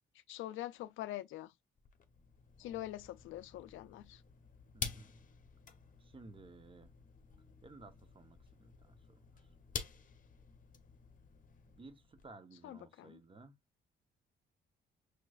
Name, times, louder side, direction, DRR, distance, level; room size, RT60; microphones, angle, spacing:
voice 1, 0.3-1.5 2.6-4.2 12.6-13.2, left 14 dB, 80° left, 0.4 m, -44 dB
sound 1, 1.8-12.3, left 5 dB, 45° left, 0.9 m, -49 dB
voice 2, 2.6-2.9 4.7-5.1 6.0-6.9 7.6-9.5 11.7-13.5, right 3 dB, 25° right, 1.0 m, -57 dB
6.5 x 3.0 x 2.4 m
cardioid pair, 90°, 20 cm